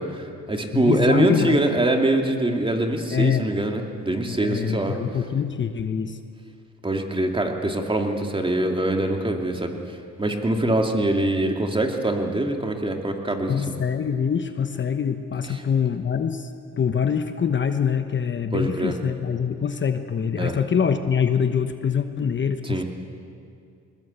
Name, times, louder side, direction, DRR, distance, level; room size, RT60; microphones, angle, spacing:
voice 1, 0.0-5.0 6.8-13.6 15.5-15.6 18.5-19.0 20.4-20.6 22.6-22.8, right 1 dB, 15° right, 3 dB, 2.6 m, -24 dB
voice 2, 0.7-1.6 3.1-3.4 4.2-6.2 13.5-16.5 16.8-22.8, left 7 dB, 40° left, 8 dB, 1.1 m, -24 dB
21.0 x 20.5 x 8.2 m, 2.5 s
cardioid pair, 90°, 30 cm